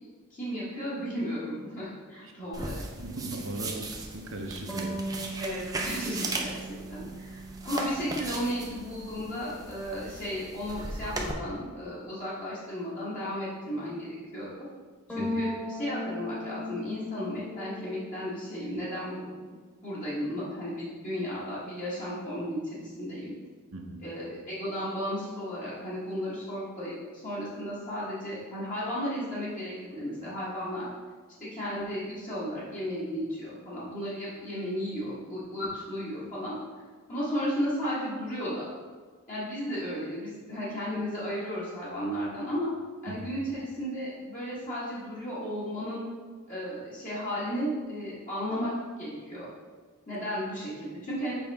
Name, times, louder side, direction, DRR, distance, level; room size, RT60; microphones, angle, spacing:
voice 1, 0.0-2.9 5.4-14.7 15.1-19.5 19.8-23.3 24.0-30.9 31.4-36.6 37.1-38.7 39.3-42.7 43.0-46.0 46.5-48.7 49.0-49.5 50.1-51.3, equal, 35° left, -9 dB, 1.7 m, -34 dB
sound 1, 2.5-11.3, right 2 dB, 15° right, 0.6 m, -38 dB
voice 2, 2.9-5.0 15.1-15.3 23.7-24.0 43.1-43.2, right 2 dB, 65° right, 2 dB, 0.9 m, -38 dB
sound 2, 4.7-9.2 15.1-18.1, equal, 10° left, 1.4 m, -37 dB
7.0 x 5.2 x 3.6 m, 1.5 s
head